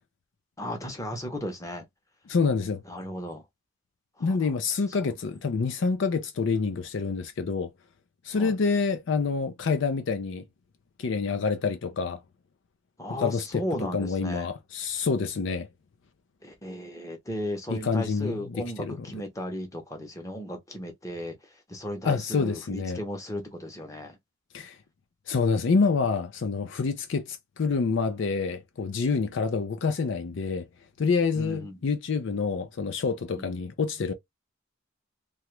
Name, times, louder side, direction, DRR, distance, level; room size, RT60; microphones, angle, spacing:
voice 1, 0.6-1.8 2.9-3.4 4.2-4.4 5.0-5.1 8.3-8.6 13.0-14.5 16.4-21.4 21.7-24.2 31.3-31.7 33.4-33.5, equal, 15° left, 0.8 m, -35 dB
voice 2, 2.3-2.8 4.2-7.7 8.2-10.4 11.0-12.2 13.2-15.7 17.7-19.1 22.0-23.0 24.5-24.8 25.3-30.7 31.0-34.1, left 4 dB, 65° left, 0.4 m, -27 dB
2.9 x 2.3 x 3.1 m
head